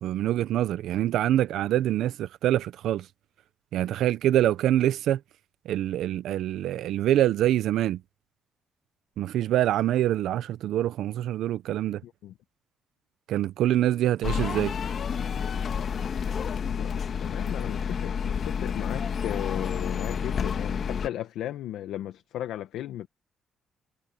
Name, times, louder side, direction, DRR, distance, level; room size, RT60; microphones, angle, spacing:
voice 1, 0.0-3.1 3.7-5.2 5.7-8.0 9.2-12.0 13.3-14.8, right 12 dB, 80° right, 0.6 m, -25 dB
voice 2, 12.0-12.3 16.5-23.1, left 12 dB, 85° left, 1.2 m, -36 dB
sound 1, 14.2-21.1, left 7 dB, 55° left, 1.7 m, -30 dB
cardioid pair, 90°, 0 cm